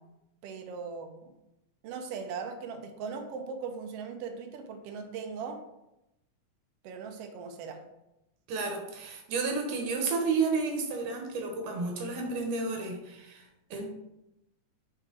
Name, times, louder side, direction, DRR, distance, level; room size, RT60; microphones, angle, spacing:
voice 1, 0.4-1.3 1.8-5.6 6.8-7.8, right 5 dB, 70° right, 4 dB, 1.6 m, -39 dB
voice 2, 8.5-13.9, right 4 dB, 85° right, 2 dB, 2.8 m, -31 dB
6.3 x 5.0 x 4.5 m, 0.89 s
omnidirectional pair, 3.5 m